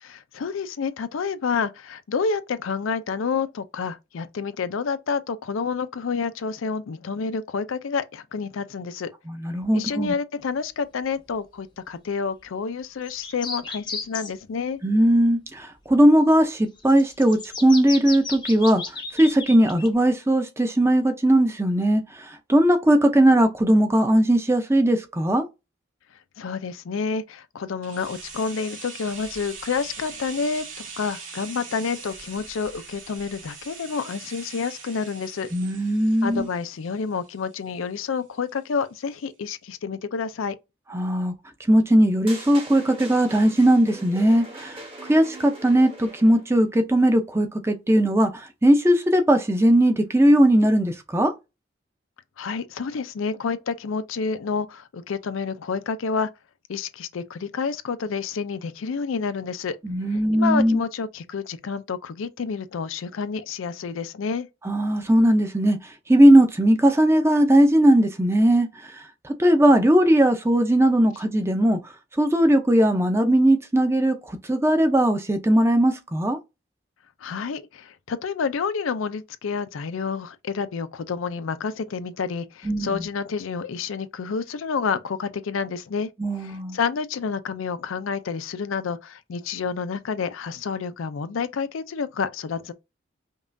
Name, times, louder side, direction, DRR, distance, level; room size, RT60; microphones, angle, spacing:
voice 1, 0.0-9.1 9.7-14.8 26.4-35.5 36.2-40.6 52.4-56.3 56.7-59.8 60.1-64.5 77.2-86.1 86.4-92.7, left 5 dB, 90° left, 0.4 m, -29 dB
voice 2, 9.3-10.1 14.8-18.8 19.1-25.4 35.5-36.5 40.9-41.3 41.7-44.8 45.1-51.3 59.8-60.8 64.6-65.8 66.1-68.9 69.2-71.8 72.2-76.4 82.6-83.0 86.2-86.8, right 1 dB, 15° right, 0.5 m, -19 dB
sound 1, 13.0-14.3 16.8-19.9, left 4 dB, 20° left, 0.7 m, -34 dB
sound 2, 27.8-37.7 37.9-38.0, right 5 dB, 80° right, 1.7 m, -42 dB
sound 3, 42.3-46.5, right 2 dB, 30° right, 1.0 m, -41 dB
5.3 x 2.4 x 2.5 m
head